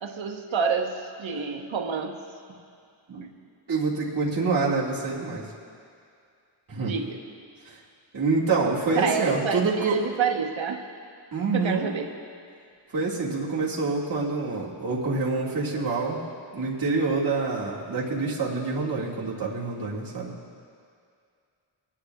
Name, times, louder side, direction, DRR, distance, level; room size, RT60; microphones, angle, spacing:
voice 1, 0.0-2.2 6.7-7.2 9.0-10.8 11.5-12.1, right 6 dB, 70° right, 2 dB, 1.1 m, -28 dB
voice 2, 3.7-5.5 6.7-6.9 7.7-7.8 8.1-10.1 11.3-11.9 12.9-16.2 16.5-20.3, right 3 dB, 45° right, -7 dB, 2.0 m, -26 dB
26.0 x 9.9 x 2.3 m, 2.3 s
wide cardioid pair, 125°, 48 cm